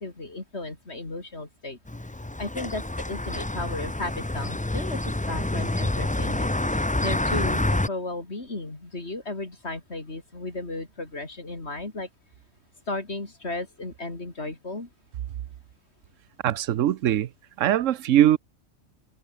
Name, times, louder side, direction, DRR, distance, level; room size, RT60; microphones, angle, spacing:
voice 1, 0.0-1.8 2.4-12.1 12.9-14.9, left 2 dB, 55° left, 4.2 m, -35 dB
sound 1, 1.9-7.9, left 1 dB, 10° left, 0.3 m, -27 dB
voice 2, 16.4-17.3 17.6-18.4, right 12 dB, 80° right, 1.1 m, -21 dB
omnidirectional pair, 1.3 m